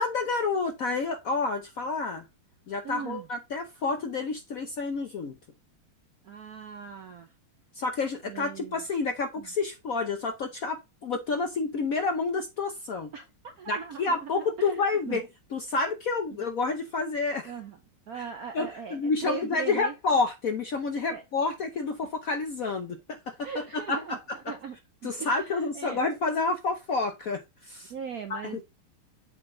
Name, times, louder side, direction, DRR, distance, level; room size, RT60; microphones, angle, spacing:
voice 1, 0.0-2.2 2.7-5.4 7.7-13.1 13.7-15.2 15.5-17.5 18.1-18.3 18.5-23.6 23.9-24.2 25.0-27.9 28.3-28.6, left 4 dB, 60° left, 0.9 m, -29 dB
voice 2, 2.8-3.3 6.2-7.3 8.2-8.8 9.4-9.5 13.1-15.2 17.4-17.8 18.1-19.9 21.1-21.2 23.4-24.8 25.0-26.1 27.9-28.6, right 7 dB, 65° right, 0.9 m, -39 dB
7.7 x 3.9 x 3.7 m
omnidirectional pair, 2.3 m